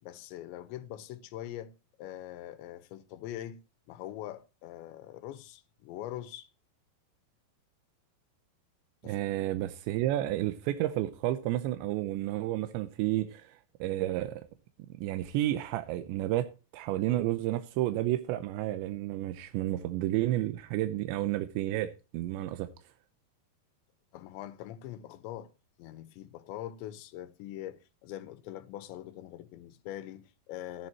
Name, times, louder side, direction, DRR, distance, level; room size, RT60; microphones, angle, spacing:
voice 1, 0.0-1.7 2.0-3.6 3.9-6.5 9.0-9.2 24.1-25.5 25.8-30.9, left 13 dB, 90° left, 3.3 m, -43 dB
voice 2, 9.0-14.4 15.0-16.5 16.7-22.7, right 14 dB, 90° right, 3.2 m, -31 dB
14.5 x 10.5 x 3.0 m
omnidirectional pair, 5.0 m